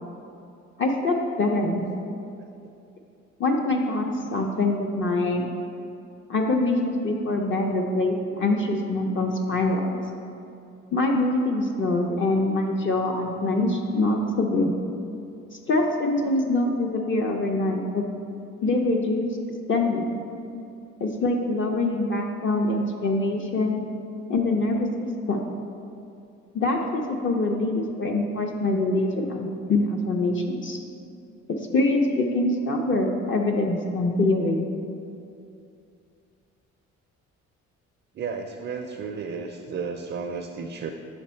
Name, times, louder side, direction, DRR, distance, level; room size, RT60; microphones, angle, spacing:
voice 1, 0.8-1.9 3.4-5.4 6.3-9.8 10.9-14.7 15.5-18.0 18.6-19.4 19.7-20.1 21.0-23.8 24.3-24.9 25.3-25.4 26.5-30.8 31.5-34.7, left 2 dB, 40° left, 1 dB, 0.5 m, -24 dB
voice 2, 38.1-40.9, right 5 dB, 40° right, 5 dB, 0.4 m, -33 dB
7.2 x 3.4 x 4.3 m, 2.6 s
cardioid pair, 90°, 30 cm